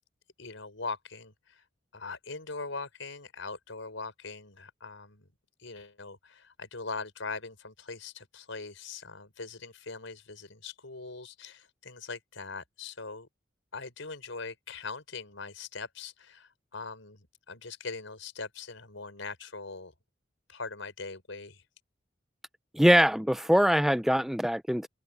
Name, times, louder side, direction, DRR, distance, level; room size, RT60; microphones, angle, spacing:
voice 1, 0.4-1.6 1.9-5.3 5.6-13.3 13.7-19.9 20.5-21.6, left 4 dB, 85° left, 5.2 m, -41 dB
voice 2, 22.7-24.9, equal, ahead, 0.5 m, -23 dB
open air
head